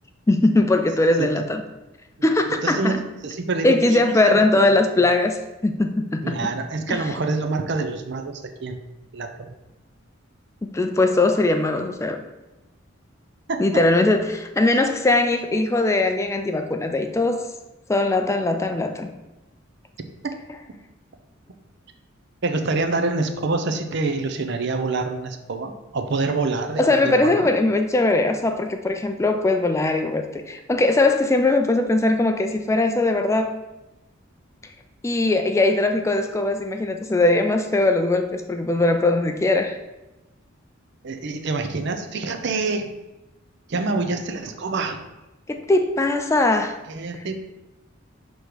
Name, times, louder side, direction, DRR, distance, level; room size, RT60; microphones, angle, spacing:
voice 1, 0.3-1.6 2.2-3.0 3.6-6.5 6.9-7.0 10.7-12.2 13.6-17.4 17.9-19.1 26.8-33.5 35.0-39.8 45.5-46.8 47.1-47.2, left 2 dB, 15° left, 6 dB, 0.3 m, -20 dB
voice 2, 2.6-4.4 6.2-8.8 9.1-9.5 13.5-13.6 22.4-27.5 41.0-42.9 43.7-45.0 46.9-47.4, right 3 dB, 60° right, 6 dB, 0.6 m, -26 dB
6.3 x 3.1 x 5.0 m, 1.0 s
head